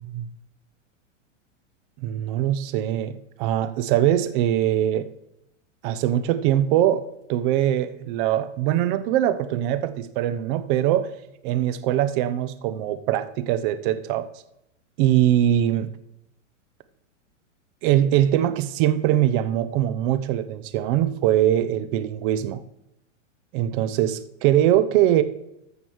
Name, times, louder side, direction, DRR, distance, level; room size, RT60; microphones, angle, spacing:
voice 1, 2.0-5.1 5.8-11.1 11.4-14.3 15.0-15.9 17.8-22.6 23.5-25.2, right 12 dB, 40° right, 13 dB, 0.9 m, -22 dB
14.0 x 5.3 x 6.3 m, 0.82 s
supercardioid pair, 145°, 38 cm